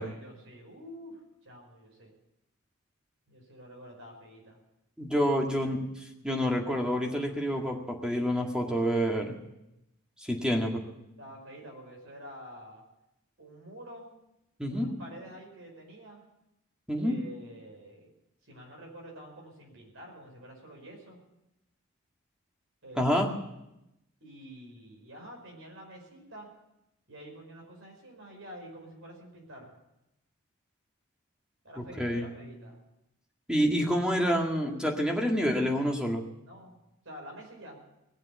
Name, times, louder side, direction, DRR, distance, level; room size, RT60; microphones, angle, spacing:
voice 1, 0.0-2.1 3.3-4.6 5.3-5.4 10.3-10.5 11.2-12.8 13.4-14.1 14.7-16.2 17.0-18.1 18.4-21.2 22.8-23.3 24.2-26.5 27.1-29.7 31.6-32.8 36.5-36.8 37.0-37.8, equal, 65° right, 0 dB, 5.3 m, -48 dB
voice 2, 5.0-5.9 6.2-9.4 10.2-10.8 14.6-14.9 16.9-17.2 23.0-23.3 32.0-32.3 33.5-36.2, equal, 5° right, 1 dB, 1.9 m, -28 dB
19.5 x 7.5 x 8.5 m, 0.89 s
head